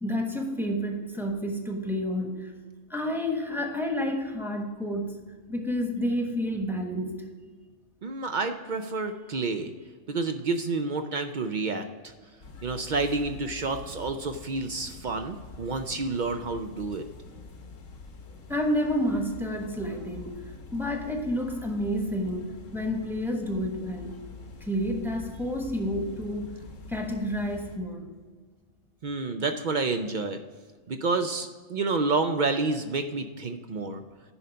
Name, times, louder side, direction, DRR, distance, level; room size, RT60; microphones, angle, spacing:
voice 1, 0.0-2.5 2.9-5.2 5.5-7.2 18.5-20.4 20.7-24.1 24.6-26.6 26.9-28.1, equal, ahead, 2 dB, 1.0 m, -30 dB
voice 2, 8.0-9.7 10.1-12.1 12.6-17.1 29.0-30.4 30.9-34.0, right 3 dB, 65° right, 8 dB, 0.4 m, -29 dB
sound 1, 12.4-27.8, left 4 dB, 65° left, 1.4 m, -45 dB
10.0 x 5.6 x 5.1 m, 1.5 s
omnidirectional pair, 1.4 m